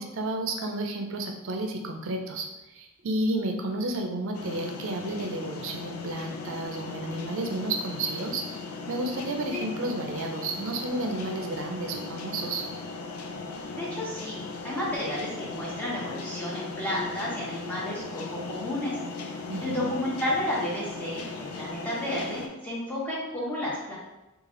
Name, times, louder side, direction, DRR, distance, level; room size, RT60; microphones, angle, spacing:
voice 1, 0.0-2.5 2.7-8.4 8.9-12.6 19.5-19.9, right 2 dB, 60° right, 4 dB, 0.5 m, -31 dB
sound 1, 4.3-22.5, left 3 dB, 80° left, 0.5 m, -38 dB
voice 2, 13.7-19.0 19.6-23.9, left 1 dB, 10° left, -8 dB, 1.1 m, -32 dB
3.2 x 2.4 x 3.7 m, 1.0 s
head